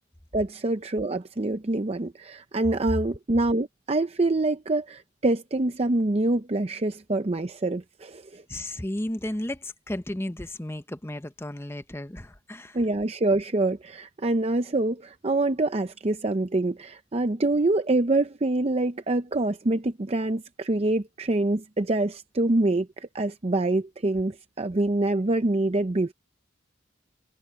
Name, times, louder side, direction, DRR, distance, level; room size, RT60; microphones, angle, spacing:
voice 1, 0.3-8.4 12.7-26.1, right 2 dB, 35° right, 0.6 m, -25 dB
voice 2, 8.5-12.8, left 1 dB, 15° left, 0.9 m, -34 dB
head